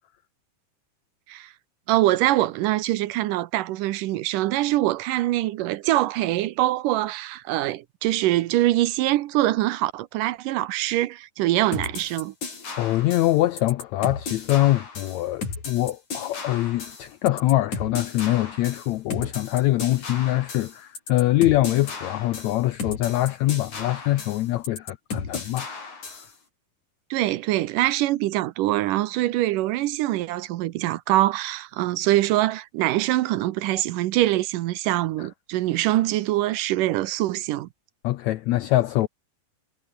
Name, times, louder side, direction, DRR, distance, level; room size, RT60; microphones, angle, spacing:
voice 1, 1.9-12.3 27.1-37.7, right 16 dB, 75° right, 2.3 m, -24 dB
sound 1, 11.7-26.3, left 4 dB, 55° left, 7.2 m, -35 dB
voice 2, 12.8-25.7 38.0-39.1, left 16 dB, 80° left, 1.6 m, -23 dB
omnidirectional pair, 4.0 m